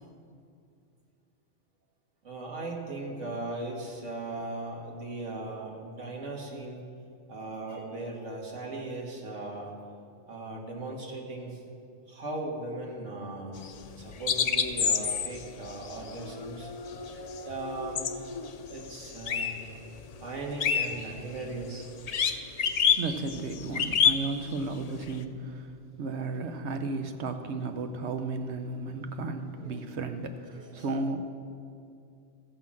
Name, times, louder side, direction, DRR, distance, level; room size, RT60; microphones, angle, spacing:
voice 1, 2.2-6.9 7.3-9.7 10.3-11.6 12.1-13.7 14.0-16.7 17.1-18.1 18.7-19.6 20.2-22.2 29.6-29.8 30.5-31.0, right 2 dB, 90° right, -1 dB, 1.9 m, -38 dB
sound 1, 13.6-19.7 20.0-25.2, left 7 dB, 55° left, 0.4 m, -29 dB
voice 2, 22.9-31.2, right 3 dB, 70° right, 7 dB, 1.1 m, -34 dB
14.0 x 5.7 x 7.4 m, 2.4 s
omnidirectional pair, 1.2 m